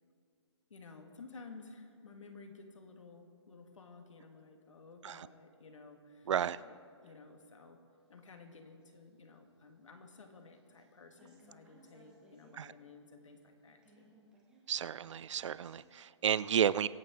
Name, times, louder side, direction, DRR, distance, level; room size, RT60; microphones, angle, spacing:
voice 1, 0.7-7.8 8.1-14.1, left 4 dB, 90° left, 4 dB, 2.0 m, -54 dB
voice 2, 6.3-6.6 12.6-12.7 14.7-16.9, right 9 dB, 75° right, 18 dB, 0.4 m, -32 dB
sound 1, 8.0-10.9 11.1-12.6 12.8-12.9 13.2-15.7, right 2 dB, 5° right, 1.1 m, -65 dB
23.5 x 8.7 x 3.8 m, 2.2 s
hypercardioid pair, 175°, 16 cm